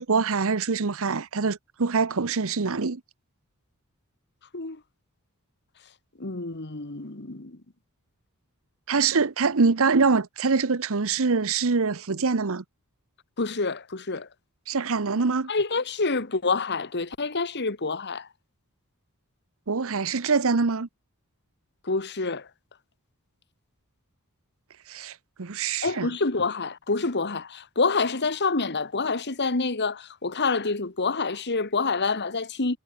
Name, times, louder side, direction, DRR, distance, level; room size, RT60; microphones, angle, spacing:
voice 1, 0.0-3.0 8.9-12.6 14.7-15.5 19.7-20.9 24.9-26.1, right 4 dB, 65° right, 0.9 m, -24 dB
voice 2, 6.2-7.6 13.4-14.3 15.5-18.3 21.8-22.5 25.8-32.8, left 4 dB, 50° left, 1.8 m, -27 dB
head